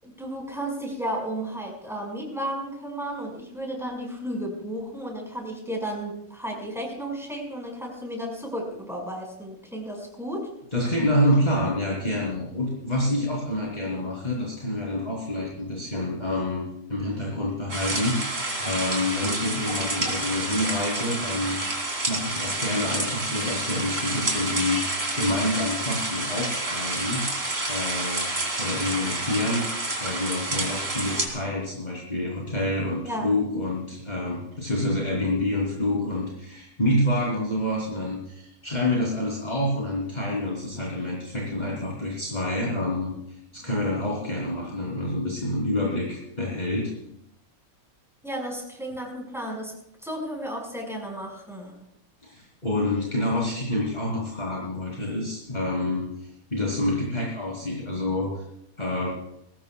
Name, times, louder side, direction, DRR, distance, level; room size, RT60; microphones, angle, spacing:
voice 1, 0.0-10.5 33.1-33.3 48.2-49.7 50.0-51.7, right 1 dB, ahead, -1 dB, 5.4 m, -33 dB
voice 2, 10.7-21.6 22.1-27.2 27.7-28.3 28.6-29.7 30.0-46.9 52.2-58.4 58.8-59.1, left 1 dB, 30° left, -4 dB, 3.6 m, -27 dB
sound 1, 17.7-31.3, right 2 dB, 45° right, 3.3 m, -29 dB
21.5 x 19.0 x 2.4 m, 0.79 s
omnidirectional pair, 1.5 m